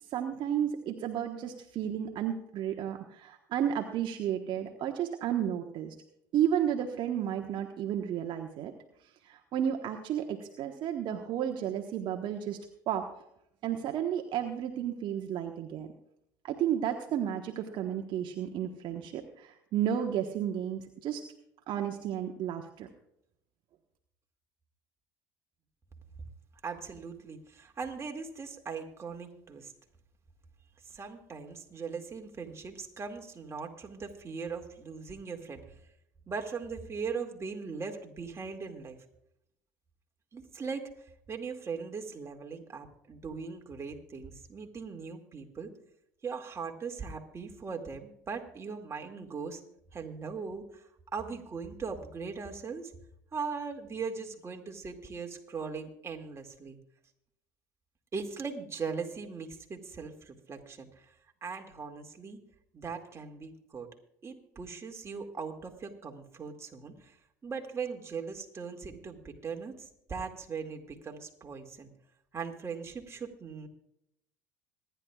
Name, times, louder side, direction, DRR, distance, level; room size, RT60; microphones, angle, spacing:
voice 1, 0.1-5.9 6.3-8.7 9.2-12.6 12.9-13.0 13.6-15.9 16.4-21.2 21.7-22.9, right 9 dB, 55° right, 4 dB, 1.2 m, -32 dB
voice 2, 26.6-29.7 30.8-35.8 36.3-39.0 40.3-45.7 46.2-49.6 49.9-52.9 53.3-56.8 58.1-61.1 61.4-62.4 62.7-63.9 64.2-67.2 67.4-71.9 72.3-73.7, right 5 dB, 30° right, 2 dB, 2.2 m, -39 dB
26.0 x 10.5 x 2.4 m, 0.78 s
hypercardioid pair, 70°, 10 cm